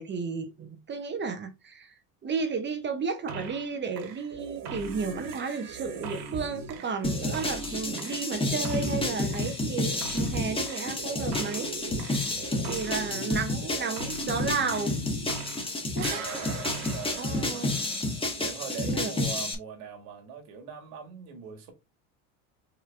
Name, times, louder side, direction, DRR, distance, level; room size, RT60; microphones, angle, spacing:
voice 1, 0.0-1.9 2.2-11.7 12.7-14.9 15.9-16.2 17.2-17.7 18.8-19.1, right 5 dB, 25° right, 0.8 m, -33 dB
sound 1, 3.3-3.7 4.0-15.7 16.0-18.2, right 4 dB, 60° right, 1.7 m, -39 dB
sound 2, 7.0-19.5, left 2 dB, 10° left, 1.2 m, -30 dB
voice 2, 12.2-12.6 15.8-16.2 16.9-17.9 18.4-21.7, right 6 dB, 75° right, 2.1 m, -42 dB
4.7 x 3.2 x 3.4 m
supercardioid pair, 115°, 43 cm